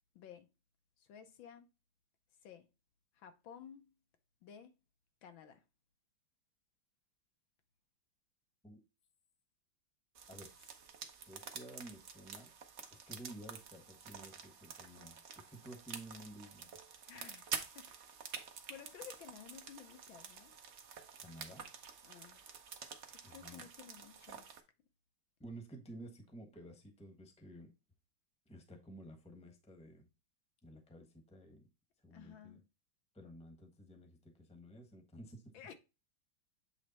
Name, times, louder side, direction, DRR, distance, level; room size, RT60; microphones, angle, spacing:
voice 1, 0.1-0.5 1.0-1.7 2.4-2.7 3.1-3.9 4.4-4.7 5.2-5.6 17.1-17.9 18.2-20.5 22.0-22.4 23.1-24.5 32.1-32.6 35.5-35.7, left 8 dB, 75° left, 1.6 m, -54 dB
sound 1, 10.1-24.6, right 6 dB, 55° right, 0.8 m, -49 dB
voice 2, 10.3-10.8 11.3-12.5 12.9-16.7 21.2-21.7 23.2-23.7 25.4-27.7 28.5-30.1 30.6-31.7 32.0-32.6 33.1-35.4, right 1 dB, 5° left, 0.9 m, -53 dB
8.3 x 3.2 x 4.1 m
omnidirectional pair, 2.2 m